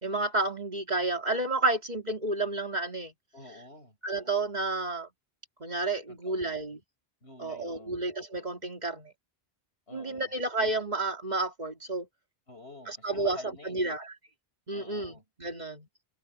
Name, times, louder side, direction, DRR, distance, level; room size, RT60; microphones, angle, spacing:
voice 1, 0.0-3.1 4.0-5.1 5.6-6.8 7.4-9.1 9.9-12.1 12.9-13.4 13.6-14.1 14.7-15.9, right 2 dB, 40° right, 2.9 m, -31 dB
voice 2, 3.3-4.0 6.1-6.5 7.2-8.0 9.9-10.3 12.5-13.9 14.7-15.2, left 2 dB, 85° left, 7.2 m, -48 dB
omnidirectional pair, 1.1 m